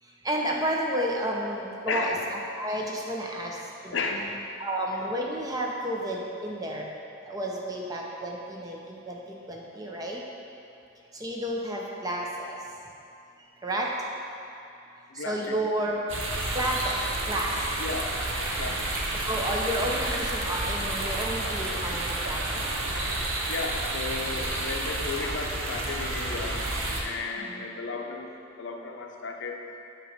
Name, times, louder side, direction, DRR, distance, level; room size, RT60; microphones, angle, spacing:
voice 1, 0.0-4.0 4.6-6.9 7.2-10.2 11.1-12.6 13.6-13.9 14.9-16.0 16.5-17.7 19.3-22.7 27.4-27.7, right 1 dB, 20° right, -2 dB, 0.6 m, -31 dB
voice 2, 1.9-2.2 3.9-4.3 15.1-15.6 17.8-18.9 23.5-29.6, left 4 dB, 65° left, 2 dB, 0.6 m, -34 dB
sound 1, 16.1-27.0, right 2 dB, 75° right, 0.8 m, -30 dB
7.8 x 3.0 x 5.1 m, 2.6 s
head